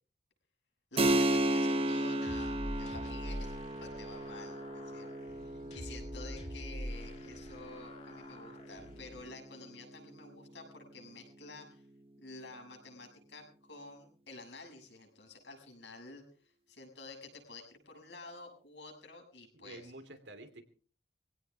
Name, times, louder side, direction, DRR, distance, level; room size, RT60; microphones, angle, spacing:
voice 1, 0.9-11.9 12.2-19.9, left 3 dB, 85° left, 2 dB, 7.2 m, -50 dB
Keyboard (musical), 1.0-11.2, right 1 dB, 30° right, 0.9 m, -35 dB
sound 1, 2.2-9.2, equal, 40° left, 3.8 m, -45 dB
voice 2, 19.5-20.6, right 1 dB, 85° right, 8 dB, 2.9 m, -49 dB
22.5 x 17.0 x 3.5 m, 0.41 s
head